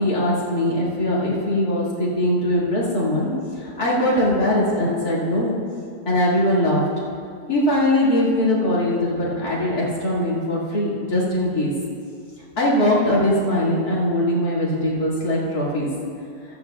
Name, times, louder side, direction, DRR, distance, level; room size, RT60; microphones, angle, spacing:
voice 1, 0.0-3.3 3.6-5.6 6.0-6.8 7.5-11.7 12.6-15.9, left 1 dB, 65° left, -6 dB, 2.7 m, -21 dB
15.0 x 12.5 x 2.3 m, 2.4 s
omnidirectional pair, 1.8 m